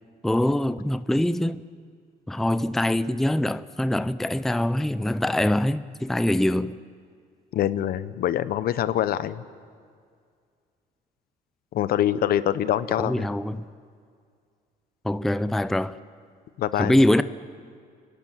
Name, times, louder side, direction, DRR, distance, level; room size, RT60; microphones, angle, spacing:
voice 1, 0.2-1.6 2.3-6.7 13.0-13.6 15.0-16.0 16.8-17.2, left 1 dB, ahead, 0.5 m, -23 dB
voice 2, 7.5-9.4 11.7-13.3 16.6-17.0, left 11 dB, 65° left, 0.9 m, -25 dB
29.5 x 12.0 x 9.1 m
cardioid pair, 110°, 17 cm